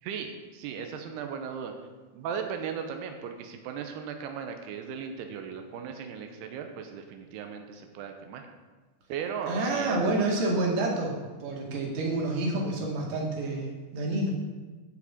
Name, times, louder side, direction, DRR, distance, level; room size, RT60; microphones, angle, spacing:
voice 1, 0.0-1.7 2.1-8.4 9.1-10.0 10.3-10.5, right 7 dB, 90° right, 5 dB, 2.9 m, -37 dB
voice 2, 9.5-14.3, right 2 dB, 50° right, -2 dB, 3.1 m, -28 dB
10.5 x 5.0 x 8.3 m, 1.3 s
omnidirectional pair, 4.6 m